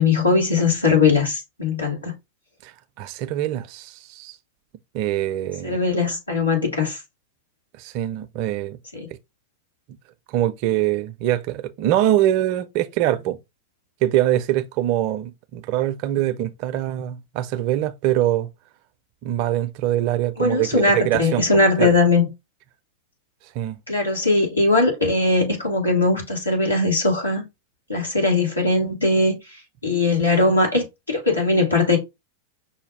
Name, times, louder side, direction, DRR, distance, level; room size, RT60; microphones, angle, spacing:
voice 1, 0.0-2.1 5.6-7.0 8.9-9.1 20.4-22.3 23.9-27.4 27.9-29.3 29.8-32.0, left 3 dB, 85° left, 1.7 m, -20 dB
voice 2, 2.6-4.4 4.9-5.8 7.8-8.8 10.3-13.4 14.0-18.5 19.2-21.5 21.8-21.9 23.5-23.8, right 13 dB, 45° right, 0.4 m, -23 dB
5.6 x 2.2 x 3.3 m
figure-of-eight pair, 90°, 0 cm